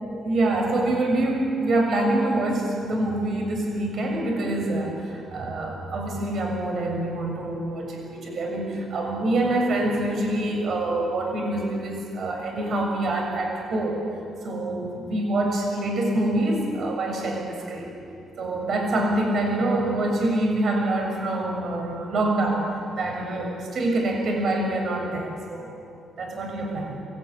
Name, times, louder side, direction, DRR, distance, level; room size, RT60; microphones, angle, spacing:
voice 1, 0.2-14.0 14.4-17.9 18.4-22.7 23.0-25.7 26.2-27.0, right 2 dB, 60° right, 0 dB, 7.0 m, -25 dB
27.5 x 18.0 x 9.7 m, 2.6 s
cardioid pair, 90°, 0 cm